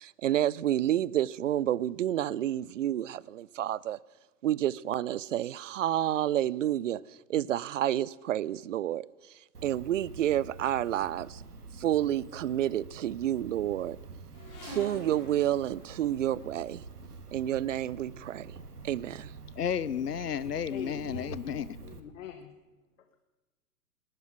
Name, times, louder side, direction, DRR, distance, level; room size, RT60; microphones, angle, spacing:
voice 1, 0.0-4.0 4.4-7.0 7.3-9.1 9.6-11.4 11.8-14.0 14.6-16.8 17.3-18.6 18.8-19.3, right 12 dB, 55° right, 22 dB, 0.5 m, -29 dB
Cricket, 9.5-22.0, right 4 dB, 80° right, 1.5 m, -47 dB
sound 1, 14.3-16.8 17.8-18.0 18.8-18.9 19.1-20.0 20.3-20.8 21.5-21.6 22.0-22.1, equal, 40° left, 6.8 m, -48 dB
voice 2, 19.6-21.8, left 8 dB, 80° left, 18 dB, 0.8 m, -32 dB
voice 3, 20.7-21.3 21.8-22.5, left 9 dB, 55° left, 9 dB, 1.2 m, -42 dB
19.0 x 11.0 x 5.9 m, 1.2 s
figure-of-eight pair, 105°, 46 cm